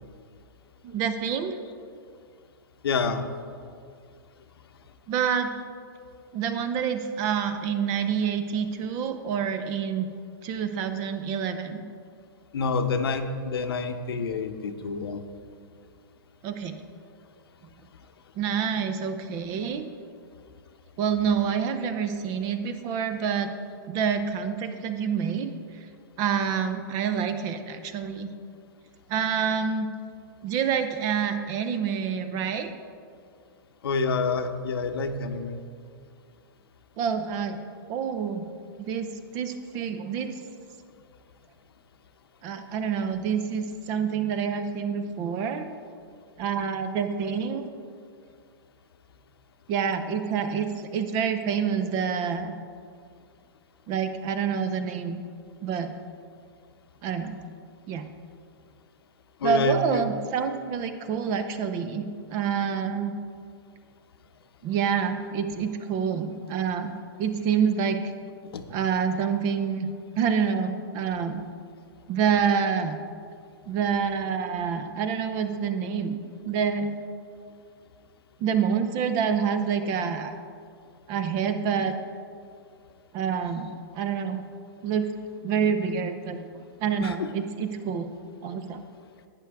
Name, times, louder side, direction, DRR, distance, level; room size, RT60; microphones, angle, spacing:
voice 1, 0.8-1.6 5.1-5.5 6.3-10.1 10.4-11.8 16.4-16.7 18.4-19.8 21.0-23.5 23.9-25.5 26.2-28.3 29.1-29.9 30.4-32.7 37.0-37.6 37.9-38.5 38.8-40.3 42.4-45.6 46.4-47.7 49.7-52.5 53.9-55.2 55.6-55.9 57.0-57.4 57.9-58.0 59.4-63.1 64.6-66.9 67.2-68.0 68.7-69.9 70.2-71.4 72.1-72.9 73.7-76.2 76.4-76.9 78.4-80.3 81.1-82.0 83.1-83.7 83.9-84.4 84.8-85.1 85.4-86.4 86.8-88.1 88.4-88.8, right 7 dB, 30° right, 9 dB, 0.6 m, -27 dB
voice 2, 2.8-3.3 12.5-15.2 33.8-35.6 59.4-60.0 68.5-68.6 87.0-87.3, left 4 dB, 85° left, 7 dB, 0.9 m, -27 dB
11.5 x 9.1 x 3.5 m, 2.2 s
hypercardioid pair, 150°, 12 cm